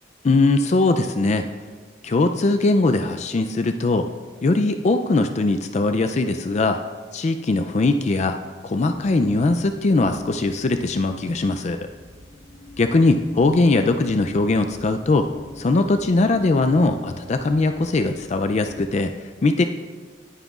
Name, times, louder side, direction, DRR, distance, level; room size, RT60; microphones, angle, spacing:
voice 1, 0.2-1.5 2.0-4.1 4.4-6.8 7.1-8.4 8.6-11.9 12.8-15.3 15.6-19.6, left 2 dB, 40° left, 7 dB, 0.4 m, -20 dB
sound 1, 8.9-19.0, left 2 dB, 70° right, 3.6 m, -44 dB
19.0 x 9.1 x 2.4 m, 1.5 s
head